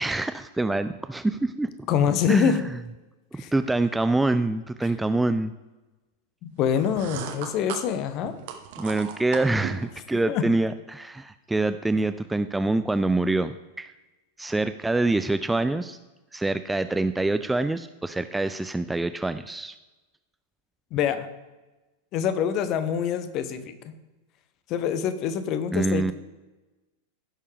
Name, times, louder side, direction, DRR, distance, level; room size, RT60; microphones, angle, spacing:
voice 1, 0.0-1.7 2.3-2.8 3.3-5.5 8.8-13.9 14.4-16.0 16.3-19.8 25.7-26.1, right 2 dB, 5° right, 11 dB, 0.3 m, -25 dB
voice 2, 1.9-2.6 3.4-3.5 6.4-8.3 10.3-10.5 20.9-21.3 22.1-23.7 24.7-26.1, left 8 dB, 40° left, 11 dB, 0.9 m, -25 dB
sound 1, 6.6-9.9, right 8 dB, 50° right, 1.1 m, -37 dB
16.0 x 6.5 x 3.4 m, 1.1 s
figure-of-eight pair, 90°, 0 cm